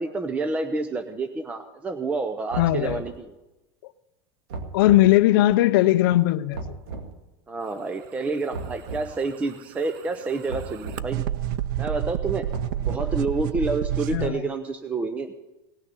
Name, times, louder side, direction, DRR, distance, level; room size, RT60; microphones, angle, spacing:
voice 1, 0.0-3.3 7.5-11.3 11.8-12.5 12.8-15.3, right 3 dB, 10° right, 0.6 m, -29 dB
sound 1, 2.5-3.1 4.5-5.1 6.5-7.1 8.5-9.1 10.5-11.1 12.5-13.2, right 3 dB, 75° right, 2.1 m, -35 dB
voice 2, 2.6-3.0 4.7-6.6 14.1-14.5, left 15 dB, 60° left, 0.5 m, -19 dB
sound 2, 9.1-14.3, right 12 dB, 55° right, 0.5 m, -29 dB
18.0 x 6.4 x 9.6 m
supercardioid pair, 160°, 13 cm